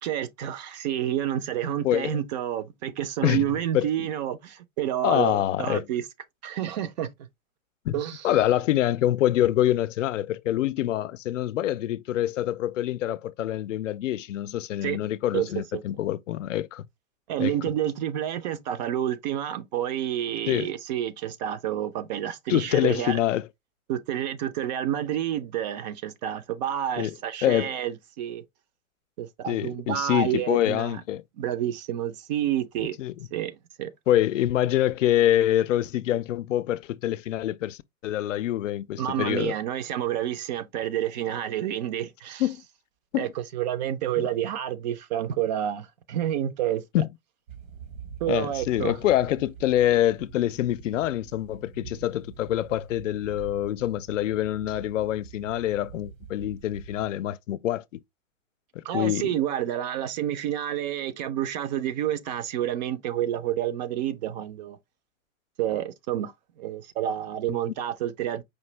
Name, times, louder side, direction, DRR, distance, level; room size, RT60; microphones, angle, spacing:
voice 1, 0.0-6.0 6.4-7.1 7.9-8.3 14.8-15.0 15.3-15.5 15.7-15.8 17.3-23.2 23.9-28.4 29.2-31.0 31.4-33.0 33.3-33.9 39.0-42.4 43.1-46.8 48.2-49.0 58.8-64.8 65.6-66.3 66.6-68.4, right 11 dB, 35° right, 0.5 m, -29 dB
voice 2, 1.8-2.2 3.2-3.5 3.7-4.1 5.0-5.9 7.9-8.0 8.2-16.9 17.4-17.5 20.5-20.7 22.5-23.5 27.0-27.1 27.4-27.7 29.5-31.2 33.0-33.1 34.1-39.5 42.4-42.6 43.1-43.3 46.9-47.1 48.3-58.0 58.7-59.3, left 13 dB, 65° left, 0.5 m, -25 dB
sound 1, 47.5-57.1, right 6 dB, 70° right, 1.2 m, -45 dB
5.0 x 2.6 x 3.1 m
hypercardioid pair, 120°, 41 cm